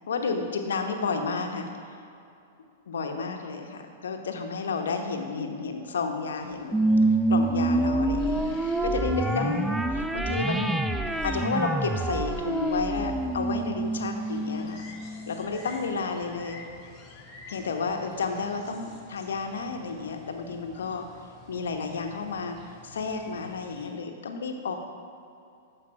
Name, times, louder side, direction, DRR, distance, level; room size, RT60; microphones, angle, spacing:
voice 1, 0.1-1.7 2.9-6.9 7.3-8.4 8.6-10.8 11.2-14.8 15.3-16.6 17.5-21.1 21.5-24.8, left 4 dB, 70° left, 4 dB, 1.1 m, -31 dB
sound 1, 6.4-23.9, left 4 dB, 35° left, 1.8 m, -50 dB
sound 2, 6.7-15.5, right 2 dB, 5° right, 0.5 m, -27 dB
13.5 x 5.2 x 4.8 m, 2.6 s
figure-of-eight pair, 105°, 0 cm